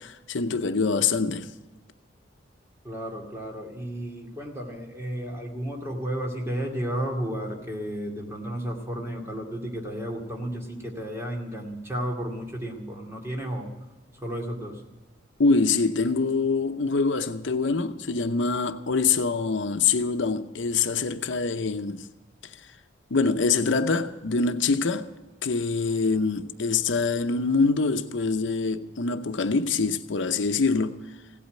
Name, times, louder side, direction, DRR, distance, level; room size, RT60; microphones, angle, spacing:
voice 1, 0.0-1.5 15.4-22.1 22.4-22.6 23.1-25.1 25.4-31.0, left 4 dB, 80° left, 0.7 m, -25 dB
voice 2, 2.8-13.7 14.2-14.8, equal, 15° right, 2.3 m, -33 dB
16.5 x 8.5 x 9.0 m
head